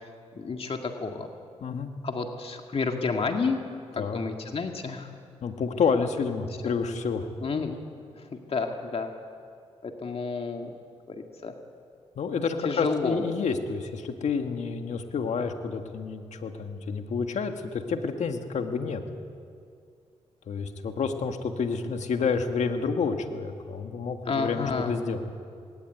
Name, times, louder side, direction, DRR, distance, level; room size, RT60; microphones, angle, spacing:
voice 1, 0.3-1.3 2.0-3.6 4.0-5.1 7.4-7.8 8.2-9.1 9.8-10.7 11.1-11.5 12.6-13.2 24.3-25.0, left 4 dB, 55° left, 3 dB, 2.0 m, -30 dB
voice 2, 1.6-1.9 4.0-4.2 5.4-7.3 12.2-19.0 20.5-25.2, left 5 dB, 75° left, 6 dB, 1.8 m, -29 dB
20.0 x 17.5 x 9.4 m, 2.3 s
cardioid pair, 65°, 12 cm